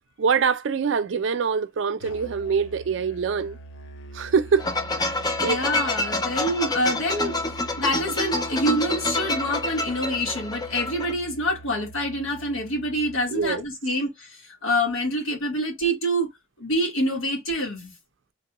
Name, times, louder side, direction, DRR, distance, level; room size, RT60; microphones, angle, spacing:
voice 1, 0.2-3.6 4.1-4.7 5.0-5.6 13.3-13.6, right 6 dB, 65° right, 0.4 m, -24 dB
Musical instrument, 2.0-13.7, right 2 dB, 65° left, 0.6 m, -44 dB
sound 1, 4.6-11.1, left 2 dB, 20° left, 0.4 m, -27 dB
voice 2, 5.4-7.4 7.8-16.3 16.6-17.9, equal, 85° left, 1.4 m, -26 dB
3.3 x 2.2 x 2.9 m
head